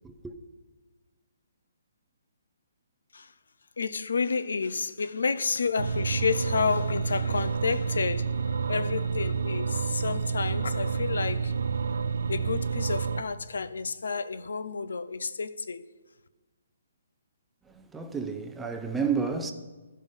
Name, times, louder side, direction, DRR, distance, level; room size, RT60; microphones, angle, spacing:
voice 1, 3.8-11.5 12.3-15.8, left 5 dB, 85° left, 0.5 m, -30 dB
sound 1, 5.8-13.2, right 5 dB, 80° right, 0.4 m, -29 dB
voice 2, 17.7-19.5, right 5 dB, 5° right, 0.5 m, -31 dB
13.5 x 5.5 x 5.3 m
hypercardioid pair, 160°, 0 cm